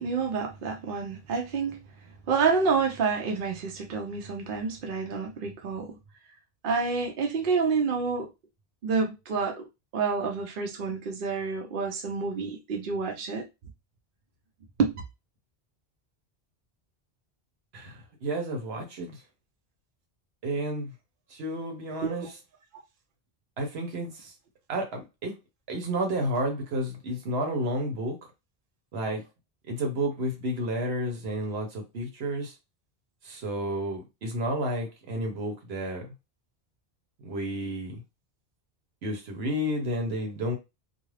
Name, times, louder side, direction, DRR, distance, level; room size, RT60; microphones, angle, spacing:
voice 1, 0.0-1.8 2.3-6.0 6.6-8.3 8.8-9.7 9.9-13.5 14.8-15.0 22.0-22.3, right 5 dB, 60° right, 0.7 m, -28 dB
voice 2, 17.7-19.2 20.4-20.9 21.3-22.4 23.6-24.3 24.7-25.4 25.7-28.2 28.9-29.2 29.7-32.5 33.2-36.1 37.2-38.0 39.0-40.6, right 1 dB, 85° right, 1.1 m, -31 dB
2.4 x 2.3 x 3.1 m
omnidirectional pair, 1.0 m